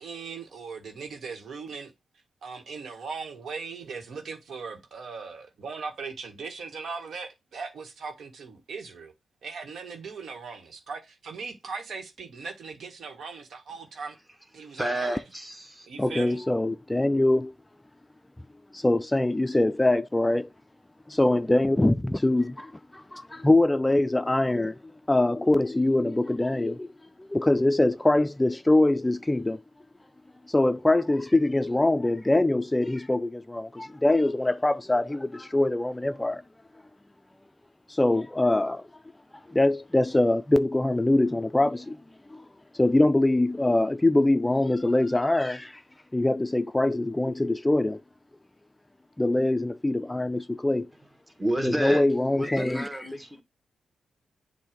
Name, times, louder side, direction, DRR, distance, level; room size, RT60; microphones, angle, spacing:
voice 1, 0.0-1.9 2.4-9.1 9.4-14.1 14.5-15.2 15.9-16.4, right 5 dB, 75° right, 1.5 m, -39 dB
voice 2, 14.6-15.9 51.4-52.0 52.3-53.4, right 1 dB, 10° right, 1.6 m, -30 dB
voice 3, 16.0-17.5 18.7-20.5 21.1-24.8 25.1-26.9 27.2-29.6 30.5-36.4 37.9-38.8 39.5-42.0 42.3-42.4 42.7-45.8 46.1-48.0 49.2-50.9 51.6-53.0, left 2 dB, 15° left, 0.4 m, -23 dB
7.6 x 2.7 x 5.1 m
cardioid pair, 65°, 0 cm